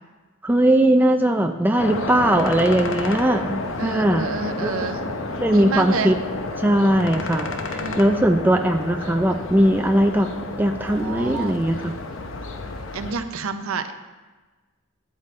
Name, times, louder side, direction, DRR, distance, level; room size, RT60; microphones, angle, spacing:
voice 1, 0.4-4.3 4.6-4.7 5.4-6.2 6.6-10.3 10.6-11.9, right 1 dB, 10° right, 4 dB, 0.4 m, -19 dB
sound 1, 1.8-13.1, left 2 dB, 60° left, 0.7 m, -30 dB
voice 2, 3.8-5.0 5.5-6.1 7.8-8.3 10.8-11.6 12.9-13.9, right 4 dB, 75° right, 9 dB, 0.6 m, -29 dB
12.5 x 8.4 x 3.2 m, 1.3 s
head